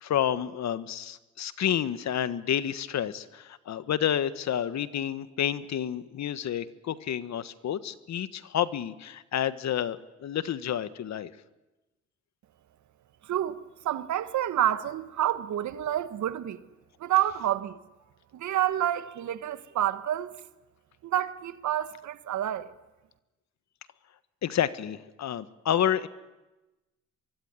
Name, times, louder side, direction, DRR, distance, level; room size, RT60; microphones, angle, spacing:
voice 1, 0.0-11.3 24.4-26.1, left 10 dB, 65° left, 1.5 m, -29 dB
voice 2, 13.2-13.6 13.8-16.6 17.0-17.8 18.3-20.4 21.0-22.7, right 12 dB, 70° right, 1.5 m, -28 dB
24.0 x 23.5 x 9.8 m
cardioid pair, 90°, 30 cm